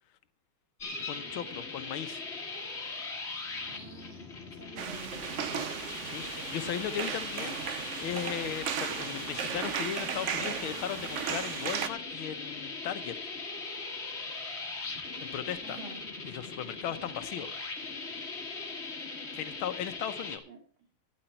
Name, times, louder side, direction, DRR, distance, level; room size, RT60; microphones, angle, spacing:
sound 1, 0.8-20.4, left 3 dB, 35° left, 2.0 m, -40 dB
voice 1, 1.1-2.2 5.4-5.7 6.0-13.2 15.2-15.8 16.2-17.5 19.4-20.4, left 10 dB, 85° left, 11 dB, 1.8 m, -37 dB
voice 2, 3.7-5.5 15.6-16.0 20.5-20.6, right 4 dB, 85° right, 2 dB, 3.5 m, -49 dB
sound 2, 4.8-11.9, right 8 dB, 70° right, 0.7 m, -36 dB
13.0 x 10.0 x 4.4 m, 0.43 s
omnidirectional pair, 2.2 m